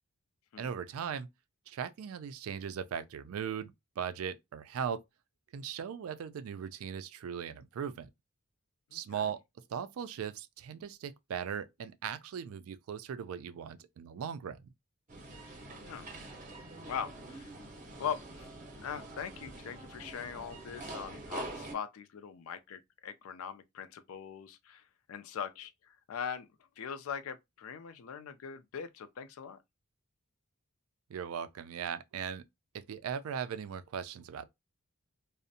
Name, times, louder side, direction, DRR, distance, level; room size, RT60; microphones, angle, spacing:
voice 1, 0.6-1.3 1.7-5.0 5.5-8.1 8.9-9.4 9.7-14.6 31.1-32.4 32.9-34.5, right 7 dB, 75° right, 0.3 m, -38 dB
voice 2, 8.9-9.3 15.8-16.1 16.9-17.5 18.0-18.5 18.8-24.8 25.1-26.5 26.8-29.6, left 7 dB, 75° left, 0.4 m, -41 dB
sound 1, 15.1-21.7, right 2 dB, 35° right, 0.6 m, -45 dB
2.5 x 2.0 x 2.6 m
head